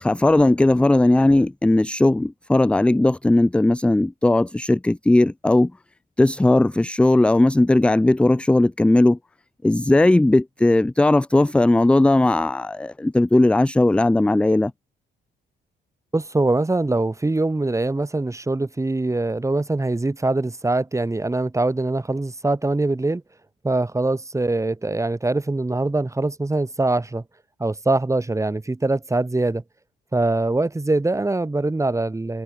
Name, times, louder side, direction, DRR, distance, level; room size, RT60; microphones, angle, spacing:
voice 1, 0.0-5.7 6.2-9.2 9.6-14.7, left 2 dB, 5° left, 0.3 m, -17 dB
voice 2, 16.1-23.2 23.6-27.2 27.6-29.6 30.1-32.4, right 2 dB, 15° right, 2.6 m, -23 dB
cardioid pair, 90°, 20 cm